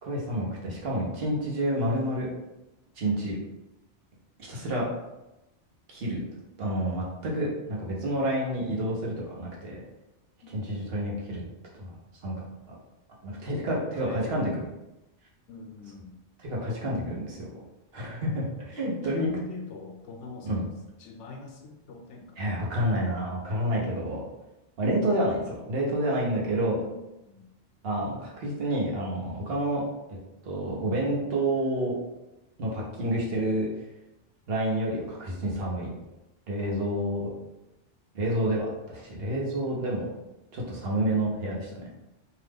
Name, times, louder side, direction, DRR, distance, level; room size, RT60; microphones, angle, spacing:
voice 1, 0.0-2.3 3.0-3.4 4.5-4.9 5.9-6.2 6.6-9.8 10.5-11.4 11.7-12.0 12.2-12.3 12.7-12.8 13.2-14.7 16.4-17.5 17.9-19.3 20.4-20.6 22.4-24.2 24.8-26.8 27.8-29.8 30.1-30.2 30.4-31.9 32.6-33.7 34.5-35.9 36.5-37.3 38.1-40.1 40.5-41.9, right 1 dB, 60° right, -3 dB, 1.0 m, -29 dB
voice 2, 10.4-10.7 13.5-14.5 15.5-16.1 18.8-20.5 21.0-22.4 26.4-27.5 36.6-36.9, left 3 dB, 80° left, 2 dB, 0.9 m, -44 dB
2.8 x 2.3 x 3.4 m, 0.95 s
omnidirectional pair, 1.2 m